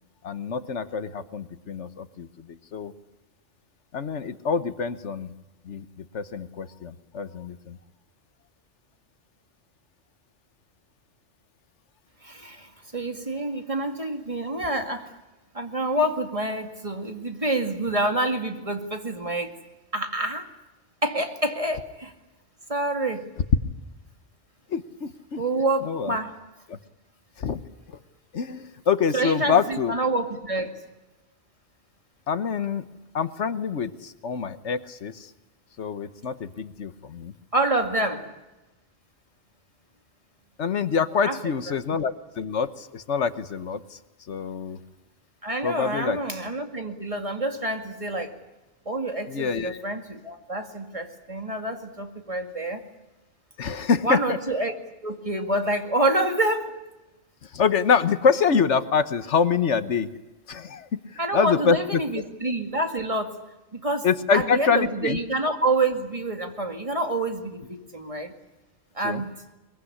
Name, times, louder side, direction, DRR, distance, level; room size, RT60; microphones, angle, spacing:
voice 1, 0.2-2.9 3.9-5.3 5.6-7.8 24.7-25.4 25.8-26.2 26.7-26.8 27.4-27.6 27.9-28.0 28.3-29.9 32.3-32.9 33.1-35.3 35.8-37.3 40.6-44.0 44.3-44.8 45.6-46.2 49.3-49.8 53.6-54.4 57.4-60.1 60.5-62.2 64.0-65.2 69.0-69.2, left 6 dB, 70° left, 12 dB, 1.4 m, -26 dB
voice 2, 12.2-15.1 15.5-19.5 19.9-20.5 21.0-22.1 22.7-23.3 25.4-26.3 29.1-30.7 37.5-38.3 41.2-41.4 45.4-48.4 48.9-52.8 54.0-54.7 55.0-56.7 61.2-63.4 63.7-64.1 64.3-68.3 69.0-69.3, right 2 dB, 30° right, 5 dB, 2.3 m, -27 dB
22.5 x 22.5 x 9.9 m, 1.0 s
omnidirectional pair, 1.2 m